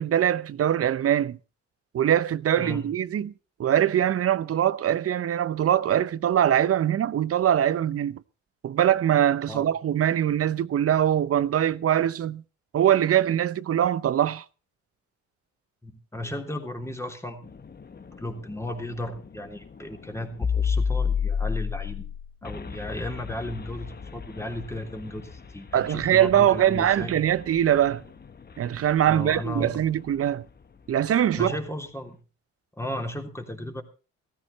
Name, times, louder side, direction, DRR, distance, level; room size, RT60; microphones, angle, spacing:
voice 1, 0.0-1.4 1.9-3.3 3.6-8.2 8.6-12.4 12.7-14.4 25.7-28.0 28.6-30.4 30.9-31.6, right 10 dB, 50° right, 0.8 m, -22 dB
voice 2, 2.6-2.9 9.5-9.7 15.8-17.5 18.2-22.0 22.4-27.1 29.1-29.8 31.3-32.2 32.8-33.8, left 1 dB, 10° left, 3.2 m, -35 dB
sound 1, 17.4-30.2, left 6 dB, 30° left, 1.3 m, -33 dB
16.0 x 14.5 x 4.1 m
cardioid pair, 90°, 30 cm